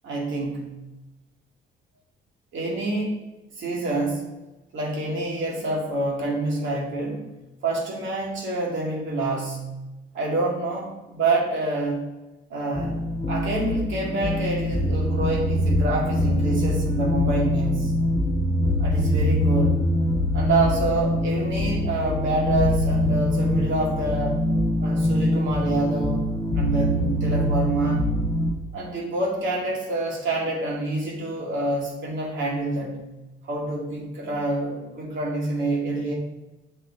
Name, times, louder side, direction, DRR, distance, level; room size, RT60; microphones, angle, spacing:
voice 1, 0.0-0.7 2.5-3.3 3.6-4.3 4.7-7.3 7.6-9.7 10.1-12.1 12.5-17.9 18.8-19.8 20.3-24.4 24.8-26.2 26.5-28.1 28.7-33.0 33.5-36.1, right 2 dB, 75° right, -1 dB, 2.3 m, -27 dB
sound 1, 12.7-28.5, left 1 dB, 30° left, 2.1 m, -23 dB
7.5 x 4.1 x 6.0 m, 1.0 s
cardioid pair, 90°, 20 cm